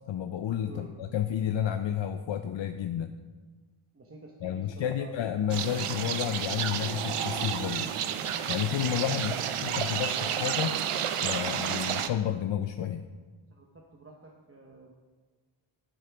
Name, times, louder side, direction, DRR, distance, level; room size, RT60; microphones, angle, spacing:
voice 1, 0.1-3.2 4.4-7.9 8.5-9.3 9.6-10.8 11.2-13.0, left 10 dB, 65° left, 7 dB, 0.5 m, -31 dB
voice 2, 3.9-5.2 9.1-9.5 13.5-14.9, right 2 dB, 25° right, 0 dB, 0.9 m, -49 dB
sound 1, 5.5-12.1, right 9 dB, 90° right, 0.7 m, -31 dB
11.5 x 8.6 x 3.4 m, 1.3 s
wide cardioid pair, 140°, 50 cm